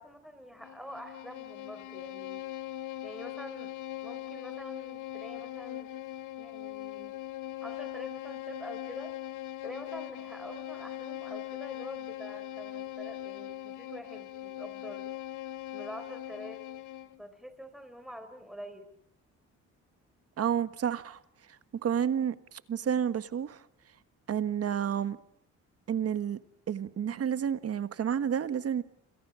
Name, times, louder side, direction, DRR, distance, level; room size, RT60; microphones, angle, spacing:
voice 1, 0.0-2.4 3.0-3.7 4.0-5.9 6.4-7.2 7.6-9.2 9.6-15.1 15.7-16.6 17.2-18.9, equal, ahead, 4.3 m, -46 dB
Bowed string instrument, 0.6-17.2, left 14 dB, 80° left, 0.9 m, -41 dB
voice 2, 20.4-21.2 21.8-23.6 24.3-25.2 25.9-26.4 26.7-28.8, right 8 dB, 50° right, 1.4 m, -30 dB
27.5 x 27.0 x 6.3 m
cardioid pair, 90°, 30 cm